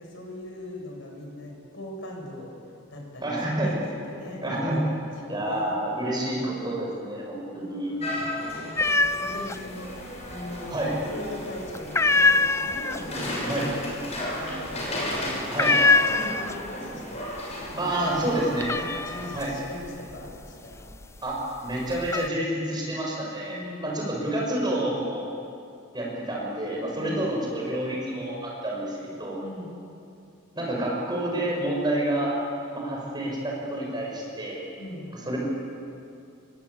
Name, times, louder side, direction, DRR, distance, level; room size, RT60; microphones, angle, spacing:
voice 1, 0.0-2.5 2.9-4.4 4.7-5.8 7.5-10.8 11.1-17.3 17.7-20.9 23.5-24.0 27.0-27.4 29.4-29.7 34.8-35.1, left 1 dB, 60° left, 0 dB, 6.9 m, -41 dB
voice 2, 3.2-3.8 4.4-4.8 5.3-8.0 10.7-11.0 13.5-13.7 15.5-15.7 17.8-18.7 19.3-19.5 21.2-25.2 25.9-29.4 30.5-32.4 32.7-34.6 35.0-35.4, right 1 dB, 20° right, -2 dB, 6.7 m, -29 dB
sound 1, 8.0-19.3, left 1 dB, 30° left, 6.6 m, -34 dB
sound 2, 8.8-9.6 9.9-10.7 11.0-11.4 11.7-16.8 17.2-17.7 18.0-21.2 21.7-22.3, left 3 dB, 15° left, 0.6 m, -24 dB
30.0 x 23.0 x 8.3 m, 2.5 s
head